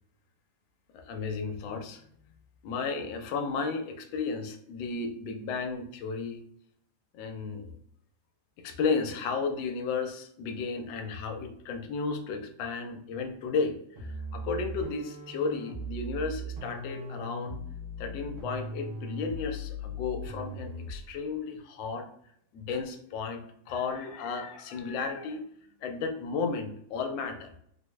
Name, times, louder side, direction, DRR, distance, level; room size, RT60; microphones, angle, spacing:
voice 1, 0.9-2.0 2.6-6.4 7.1-7.7 8.6-17.6 18.0-22.1 22.5-25.4 25.8-27.5, left 4 dB, 90° left, 5 dB, 1.3 m, -33 dB
sound 1, 14.0-21.1, equal, 70° right, 1.2 m, -39 dB
3.5 x 2.0 x 3.1 m, 0.69 s
omnidirectional pair, 2.0 m